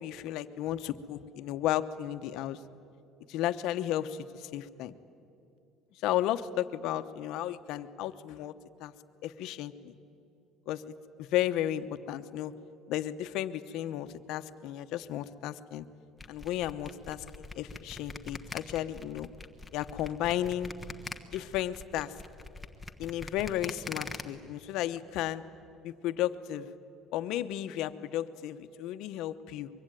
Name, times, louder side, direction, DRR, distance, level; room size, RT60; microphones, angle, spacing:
voice 1, 0.0-2.6 3.3-5.0 6.0-8.5 8.8-8.9 9.2-9.9 10.7-12.5 12.9-15.8 16.3-19.3 19.7-20.7 21.3-22.1 23.0-25.4 25.8-26.7 27.1-29.7, left 12 dB, 70° left, 11 dB, 1.0 m, -33 dB
sound 1, 16.2-24.2, left 3 dB, 5° left, 1.3 m, -42 dB
24.0 x 23.0 x 9.2 m, 2.6 s
cardioid pair, 140°, 0 cm